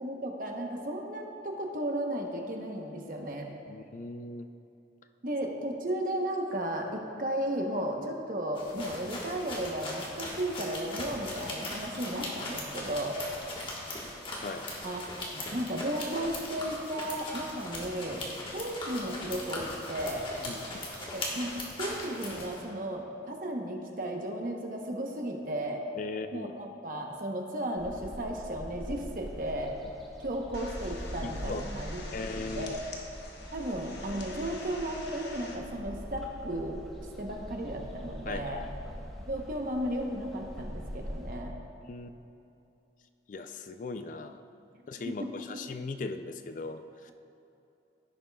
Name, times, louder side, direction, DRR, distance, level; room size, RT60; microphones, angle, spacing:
voice 1, 0.0-3.5 5.2-13.2 14.8-15.0 15.3-18.2 18.5-20.3 21.1-25.8 26.3-29.7 30.2-32.0 32.3-32.9 33.5-36.8 37.2-38.6 39.3-41.5 45.0-45.6, right 1 dB, 50° right, 2 dB, 0.9 m, -34 dB
voice 2, 3.7-4.5 14.4-14.7 20.4-20.8 26.0-26.5 31.2-31.7 32.1-32.8 38.3-38.8 41.9-42.1 43.3-44.4 44.9-47.1, left 3 dB, 45° left, 9 dB, 0.4 m, -38 dB
sound 1, 8.6-22.6, left 1 dB, 30° left, 1.3 m, -39 dB
sound 2, 27.8-41.4, equal, ahead, 0.9 m, -43 dB
sound 3, 30.5-35.6, left 2 dB, 70° left, 1.1 m, -45 dB
15.5 x 7.2 x 2.3 m, 2.8 s
head